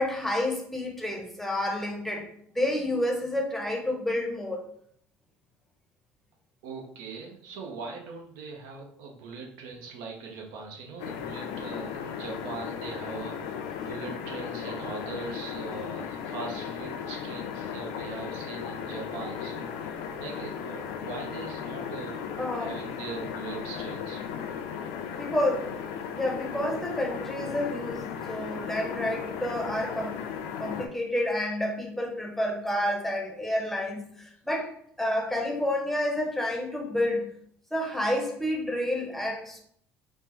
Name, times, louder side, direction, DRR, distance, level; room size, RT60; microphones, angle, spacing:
voice 1, 0.0-2.3 2.5-4.6 22.4-22.7 25.1-25.7 26.1-30.2 30.6-34.7 35.0-37.3 37.7-39.6, left 1 dB, 5° left, 1 dB, 0.7 m, -29 dB
voice 2, 6.6-22.3 22.5-24.2, right 4 dB, 80° right, 1 dB, 0.6 m, -41 dB
sound 1, 11.0-30.9, left 7 dB, 80° left, 0.3 m, -36 dB
3.4 x 2.0 x 2.9 m, 0.66 s
supercardioid pair, 80°, 6 cm